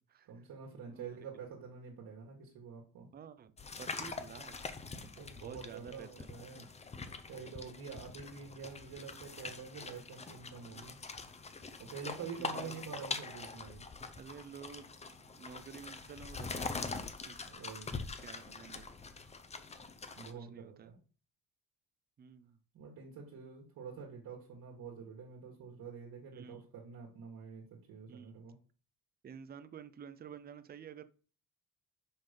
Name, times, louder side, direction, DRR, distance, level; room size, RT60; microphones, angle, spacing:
voice 1, 0.3-3.1 4.9-6.7 7.3-11.0 11.8-13.8 17.4-18.0 20.2-21.0 22.7-28.6, right 6 dB, 70° right, -1 dB, 2.0 m, -47 dB
voice 2, 0.9-1.2 3.1-4.6 5.4-6.3 12.2-12.3 12.5-12.8 14.2-14.9 15.3-16.9 17.3-17.4 18.2-18.9 20.3-20.9 22.2-22.6 26.3-26.7 28.1-28.4 29.2-31.0, right 7 dB, 25° right, 13 dB, 0.5 m, -51 dB
sound 1, 3.6-20.3, left 4 dB, 20° left, 0.6 m, -44 dB
5.7 x 5.4 x 5.2 m, 0.38 s
cardioid pair, 155°, 35 cm